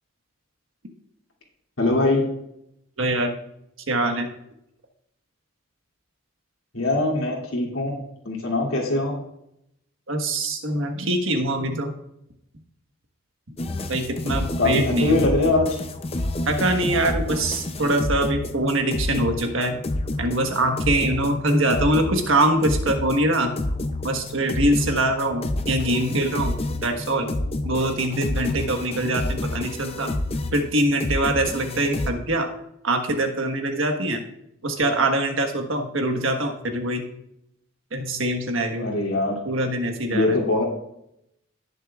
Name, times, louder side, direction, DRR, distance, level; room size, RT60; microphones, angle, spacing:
voice 1, 1.8-2.3 6.7-9.2 14.6-15.8 38.8-39.4 40.1-40.6, left 2 dB, 90° left, -2 dB, 2.8 m, -22 dB
voice 2, 3.0-3.3 3.9-4.3 10.1-11.9 13.9-15.2 16.5-19.8 20.2-23.5 24.0-27.3 27.6-30.1 30.5-32.5 32.8-34.2 34.6-37.0 37.9-38.9 39.4-40.4, right 1 dB, 75° right, 4 dB, 1.4 m, -23 dB
sound 1, 13.6-32.1, left 2 dB, 30° left, 0.5 m, -29 dB
18.5 x 6.9 x 2.4 m, 0.80 s
head